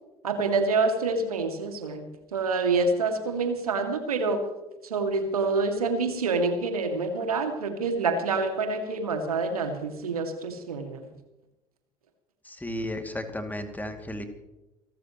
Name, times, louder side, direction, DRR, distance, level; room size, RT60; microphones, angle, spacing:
voice 1, 0.2-4.4 4.8-11.1, right 3 dB, 80° right, 6 dB, 2.2 m, -27 dB
voice 2, 12.5-14.2, left 1 dB, 10° left, 6 dB, 2.3 m, -34 dB
27.5 x 13.0 x 3.0 m, 0.98 s
figure-of-eight pair, 60°, 19 cm